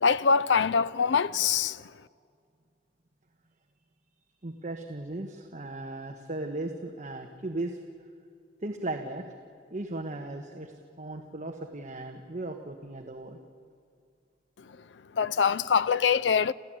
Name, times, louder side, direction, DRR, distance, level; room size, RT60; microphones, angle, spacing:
voice 1, 0.0-1.8 15.2-16.5, left 6 dB, 75° left, 0.5 m, -24 dB
voice 2, 4.4-7.8 8.6-9.2 9.7-13.4, right 2 dB, 40° right, 1.3 m, -37 dB
29.0 x 15.0 x 9.0 m
head